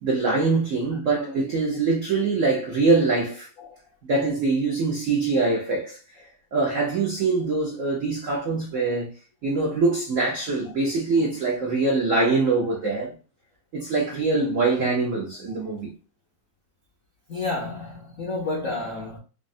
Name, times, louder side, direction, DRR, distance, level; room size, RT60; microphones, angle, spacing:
voice 1, 0.0-3.5 4.0-6.0 6.5-9.1 9.4-13.1 13.7-15.9, right 3 dB, 90° right, 0.7 m, -23 dB
voice 2, 17.3-19.2, left 2 dB, 75° left, 0.7 m, -30 dB
5.1 x 2.0 x 2.6 m
omnidirectional pair, 2.4 m